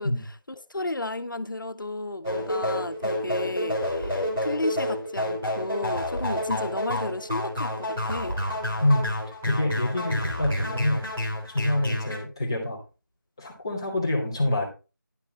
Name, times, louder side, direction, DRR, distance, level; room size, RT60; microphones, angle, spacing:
voice 1, 0.0-8.4, left 2 dB, 75° left, 1.3 m, -33 dB
sound 1, 2.2-12.2, left 1 dB, 5° right, 1.0 m, -29 dB
voice 2, 8.8-9.1 9.4-11.0 11.5-12.8 13.4-14.7, left 1 dB, 10° left, 1.7 m, -26 dB
11.5 x 6.7 x 4.1 m
figure-of-eight pair, 180°, 11 cm